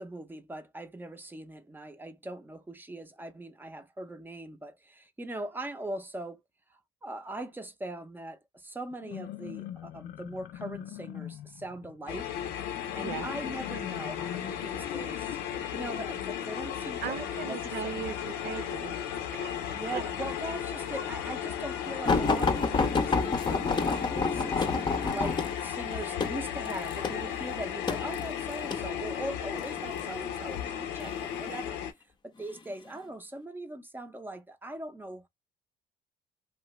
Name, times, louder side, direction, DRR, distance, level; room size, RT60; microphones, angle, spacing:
voice 1, 0.0-6.4 7.0-12.4 12.9-15.4 15.7-17.9 19.7-31.8 32.2-35.3, right 1 dB, 10° right, 0.6 m, -41 dB
sound 1, 8.9-16.8, left 12 dB, 65° left, 0.4 m, -43 dB
sound 2, 12.1-31.9, left 9 dB, 90° left, 0.7 m, -35 dB
voice 2, 17.0-19.6 19.9-20.0, right 8 dB, 65° right, 0.7 m, -38 dB
sound 3, 22.0-28.9 29.6-30.1 31.0-31.7 32.4-32.6 33.0-33.1, left 4 dB, 25° left, 0.6 m, -29 dB
2.8 x 2.4 x 3.1 m
cardioid pair, 110°, 17 cm